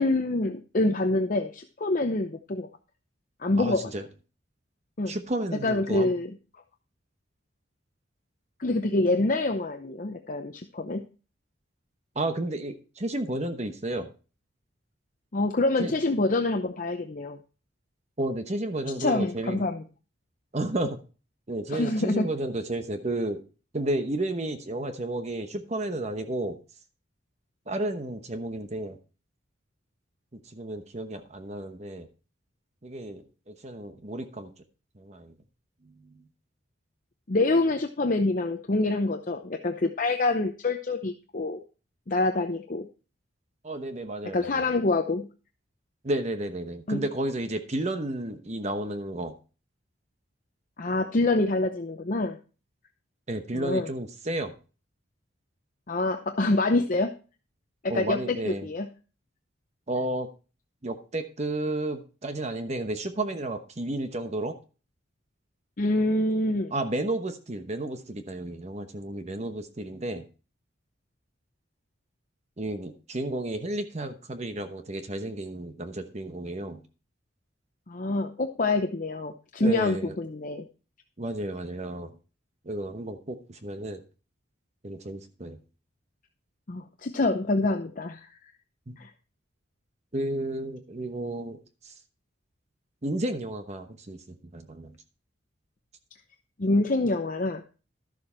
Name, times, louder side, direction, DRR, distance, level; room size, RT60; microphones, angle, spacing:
voice 1, 0.0-2.7 3.4-3.8 5.0-5.2 5.6-6.4 8.6-11.0 15.3-17.4 19.0-19.8 21.7-22.3 37.3-41.6 42.1-42.9 44.3-45.3 46.9-47.1 50.8-52.4 53.5-53.9 55.9-57.1 57.8-58.2 58.4-58.9 65.8-66.7 77.9-80.6 86.7-88.3 89.0-89.1 96.6-97.6, left 2 dB, 40° left, 6 dB, 0.7 m, -26 dB
voice 2, 3.6-4.1 5.1-6.1 12.1-14.1 15.8-15.9 18.2-19.7 20.5-21.0 21.5-23.4 23.7-26.6 27.7-29.0 30.5-32.1 32.8-34.5 35.0-35.3 35.8-36.2 43.6-44.7 46.0-49.4 53.3-54.5 57.9-58.7 59.9-60.3 60.8-64.5 66.7-70.3 72.6-76.8 79.6-80.2 81.2-82.2 82.6-84.0 84.8-85.6 88.9-89.0 90.1-91.9 93.0-95.0, right 1 dB, 35° right, 8 dB, 1.0 m, -32 dB
12.5 x 7.0 x 4.4 m, 0.35 s
head